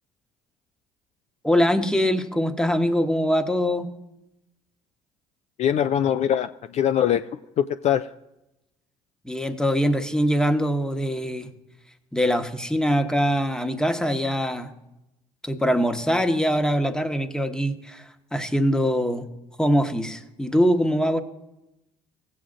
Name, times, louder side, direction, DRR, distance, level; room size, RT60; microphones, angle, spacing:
voice 1, 1.4-3.9 9.2-11.5 12.1-14.7 15.4-19.3 19.6-21.2, equal, 5° left, 8 dB, 1.0 m, -23 dB
voice 2, 5.6-7.3 7.6-8.1, left 9 dB, 45° left, 11 dB, 0.4 m, -22 dB
16.0 x 7.7 x 2.5 m, 0.92 s
hypercardioid pair, 55°, 16 cm